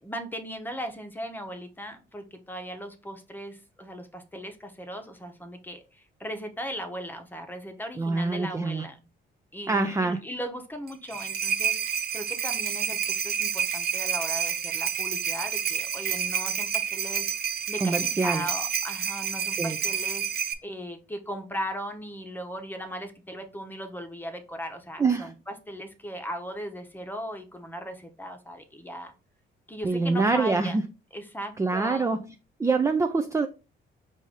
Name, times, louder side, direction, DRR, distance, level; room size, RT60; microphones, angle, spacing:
voice 1, 0.0-9.0 9.5-29.1 29.7-30.8 31.1-32.2, equal, 10° left, 0.9 m, -38 dB
voice 2, 8.0-8.9 9.7-10.2 17.8-18.5 19.6-19.8 25.0-25.3 29.8-30.8 31.6-32.3 32.6-33.5, right 3 dB, 15° right, 0.4 m, -25 dB
sound 1, 10.9-20.5, right 8 dB, 50° right, 0.6 m, -29 dB
4.9 x 2.6 x 3.9 m
cardioid pair, 90°, 20 cm